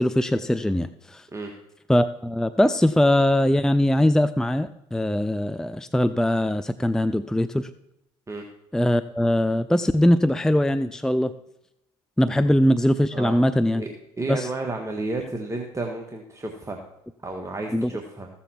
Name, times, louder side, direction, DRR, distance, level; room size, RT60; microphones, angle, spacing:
voice 1, 0.0-1.2 1.9-7.7 8.7-11.3 12.2-13.8 14.3-14.5 17.7-17.9, left 1 dB, 5° left, 12 dB, 0.5 m, -21 dB
voice 2, 13.7-16.8 17.2-18.3, right 2 dB, 25° right, 3 dB, 1.6 m, -32 dB
15.0 x 7.1 x 4.5 m, 0.85 s
supercardioid pair, 65°, 13 cm